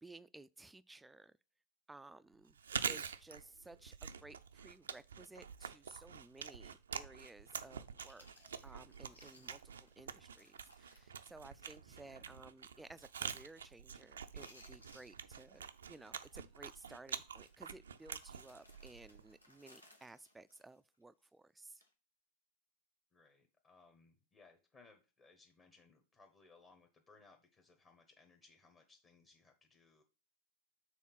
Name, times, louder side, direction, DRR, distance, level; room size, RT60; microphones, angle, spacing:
voice 1, 0.0-1.3 1.9-2.6 2.9-21.8, right 2 dB, 10° right, 0.3 m, -57 dB
Chewing mastication, 2.5-19.4, right 7 dB, 75° right, 0.4 m, -46 dB
Chewing mastication 2, 8.0-12.0 12.3-12.4 12.9-13.2 13.5-14.0 14.3-15.8 16.0-16.3 16.7-16.9 17.3-21.3 21.7-21.9, left 1 dB, 90° left, 1.0 m, -65 dB
voice 2, 9.0-9.5 11.3-11.8 12.1-12.4 23.1-30.0, left 3 dB, 30° left, 1.1 m, -66 dB
6.3 x 3.6 x 5.6 m
figure-of-eight pair, 90°, 0 cm